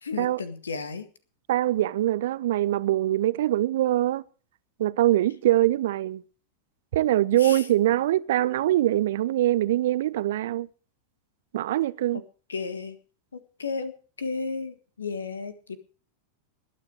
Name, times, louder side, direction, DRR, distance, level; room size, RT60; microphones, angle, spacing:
voice 1, 0.0-1.1 7.3-7.7 12.1-12.2 12.5-13.0 13.3-13.9 14.2-15.8, left 4 dB, 70° left, 1.6 m, -33 dB
voice 2, 1.5-4.2 4.8-6.2 6.9-10.7 11.5-12.2, right 14 dB, 55° right, 0.6 m, -23 dB
20.0 x 9.1 x 4.7 m
figure-of-eight pair, 90°, 0 cm